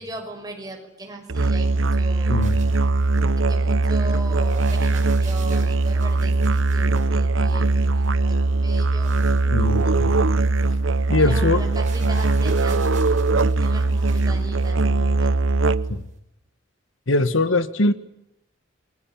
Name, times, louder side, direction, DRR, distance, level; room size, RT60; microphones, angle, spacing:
voice 1, 0.0-2.4 3.5-9.1 11.2-12.9 13.6-15.3, right 1 dB, 20° right, 3 dB, 6.4 m, -38 dB
Musical instrument, 1.3-16.0, right 3 dB, 85° right, 1.0 m, -20 dB
sound 1, 1.6-16.2, right 5 dB, 40° right, 5.7 m, -48 dB
voice 2, 2.3-2.6 9.5-10.1 11.1-11.6 15.9-16.0 17.1-17.9, left 2 dB, 85° left, 12 dB, 1.6 m, -21 dB
29.0 x 24.0 x 7.4 m, 0.84 s
head